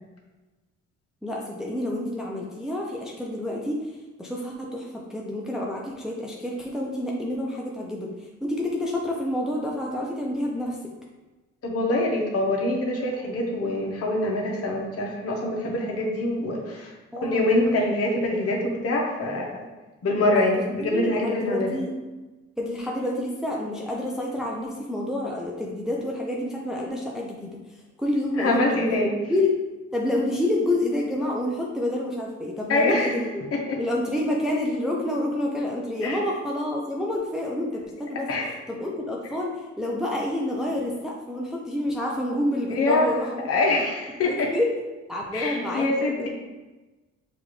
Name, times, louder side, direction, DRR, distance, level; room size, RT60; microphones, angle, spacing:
voice 1, 1.2-3.8 4.2-8.1 8.4-10.8 17.1-17.5 20.3-21.9 22.6-27.6 28.0-29.0 29.3-29.5 29.9-33.4 33.8-38.3 38.7-43.3 44.2-44.7 45.1-45.9 46.2-46.3, left 1 dB, ahead, -2 dB, 0.6 m, -28 dB
voice 2, 11.6-16.9 17.2-19.7 20.0-21.7 28.4-29.2 32.7-33.2 33.5-33.8 36.0-36.2 38.3-38.5 42.7-43.1 43.5-44.5 45.3-46.3, left 2 dB, 50° left, -1 dB, 0.9 m, -24 dB
5.8 x 2.5 x 3.2 m, 1.2 s
cardioid pair, 90°, 30 cm